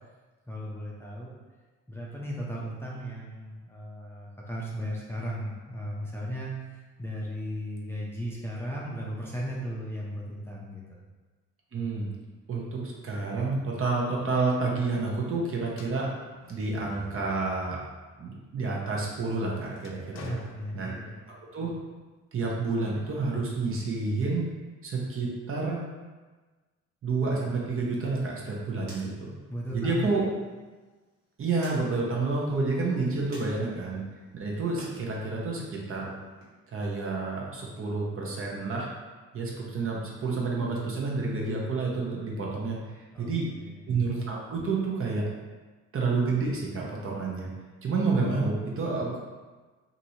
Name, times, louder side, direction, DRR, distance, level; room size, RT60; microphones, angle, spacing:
voice 1, 0.5-1.4 1.9-10.8 20.2-21.2 29.5-30.1 43.1-43.8, equal, 10° left, -5 dB, 0.5 m, -36 dB
voice 2, 11.7-12.1 12.5-16.1 16.5-17.8 18.2-20.4 20.7-20.9 21.5-21.7 22.3-24.5 24.8-25.8 27.0-29.3 29.7-30.2 31.4-34.0 34.3-36.2 36.7-38.9 39.3-43.5 43.9-45.3 45.9-47.5 47.8-49.2, right 3 dB, 45° right, -3 dB, 0.8 m, -29 dB
sound 1, 15.7-18.1 18.6-21.4, left 2 dB, 60° left, 0.5 m, -50 dB
sound 2, 27.8-35.0 35.3-36.5, right 1 dB, 65° right, 1.2 m, -54 dB
3.0 x 2.6 x 2.7 m, 1.3 s
cardioid pair, 90°, 30 cm